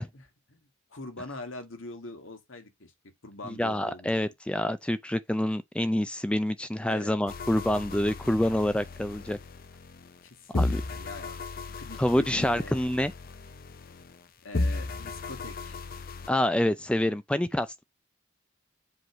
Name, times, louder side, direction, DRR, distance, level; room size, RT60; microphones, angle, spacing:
voice 1, 0.1-2.9 3.2-4.1 6.8-7.2 10.2-11.4 11.8-12.8 14.4-15.8, left 2 dB, 75° left, 1.8 m, -43 dB
voice 2, 3.6-9.4 10.5-10.8 12.0-13.1 16.3-17.8, left 1 dB, 5° left, 0.4 m, -27 dB
sound 1, 7.3-10.3 10.5-14.2 14.5-16.3, left 2 dB, 45° left, 0.7 m, -35 dB
7.7 x 3.2 x 6.0 m
head